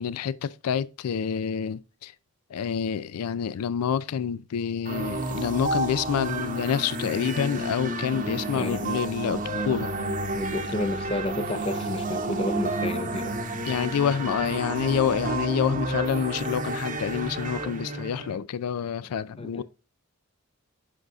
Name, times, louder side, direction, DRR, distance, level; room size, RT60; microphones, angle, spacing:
voice 1, 0.0-2.1 2.5-9.9 13.7-19.6, left 7 dB, 85° left, 0.4 m, -28 dB
sound 1, 4.9-18.4, right 2 dB, 35° right, 0.8 m, -31 dB
voice 2, 8.5-8.8 10.3-13.4 19.4-19.6, left 1 dB, 25° left, 0.5 m, -31 dB
7.8 x 6.2 x 2.4 m
head